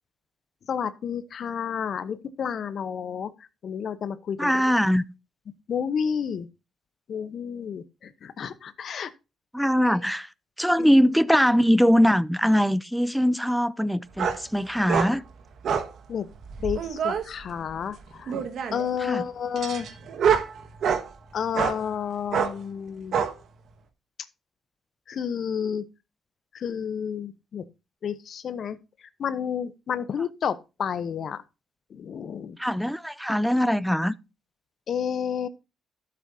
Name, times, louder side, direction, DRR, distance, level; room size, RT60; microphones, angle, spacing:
voice 1, 0.7-3.3 3.6-4.7 5.7-6.5 7.1-9.1 9.8-10.0 10.8-10.9 16.1-16.3 16.6-18.3 18.7-19.9 21.3-23.2 25.1-25.8 26.5-27.6 28.0-31.4 31.9-32.6 34.9-35.5, left 7 dB, 55° left, 0.9 m, -31 dB
voice 2, 4.4-5.0 9.5-10.3 10.6-15.2 19.0-19.2 32.6-34.1, equal, ahead, 0.5 m, -22 dB
sound 1, 14.2-14.4 14.9-15.1 15.6-15.9 16.5-17.2 18.3-18.9 19.6-21.1 21.6-21.8 22.3-22.5 23.1-23.3, right 7 dB, 65° right, 1.5 m, -25 dB
12.0 x 7.7 x 2.7 m
cardioid pair, 90°, 0 cm